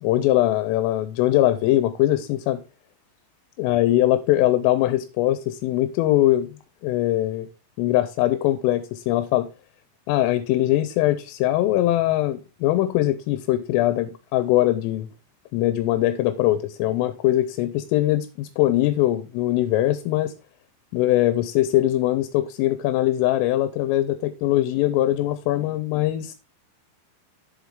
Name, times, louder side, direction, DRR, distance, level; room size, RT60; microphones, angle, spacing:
voice 1, 0.0-2.6 3.6-6.5 6.8-7.5 7.8-9.5 10.1-15.1 15.5-20.3 20.9-26.3, left 14 dB, 90° left, 3.3 m, -21 dB
7.7 x 7.2 x 3.6 m
omnidirectional pair, 5.7 m